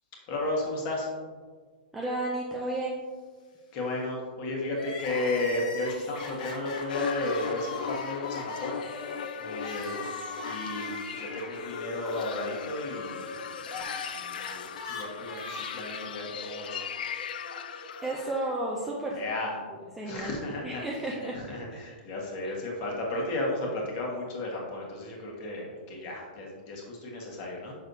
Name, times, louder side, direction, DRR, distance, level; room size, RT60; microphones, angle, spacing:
voice 1, 0.3-1.1 3.7-9.9 10.4-13.4 13.7-14.0 14.3-14.6 14.9-16.8 19.1-19.5 20.0-20.8 21.5-27.8, left 2 dB, 30° left, -1 dB, 1.4 m, -33 dB
voice 2, 1.9-3.0 18.0-19.2 19.7-20.3 20.6-21.4 22.4-22.6, right 2 dB, 5° right, -3 dB, 0.4 m, -32 dB
Crying sobbing, 4.7-18.9 19.2-19.3 20.2-21.4, left 3 dB, 50° left, 1.2 m, -40 dB
sound 1, 6.9-18.3, left 8 dB, 65° left, 0.3 m, -39 dB
6.3 x 6.2 x 2.7 m, 1.5 s
hypercardioid pair, 170°, 5 cm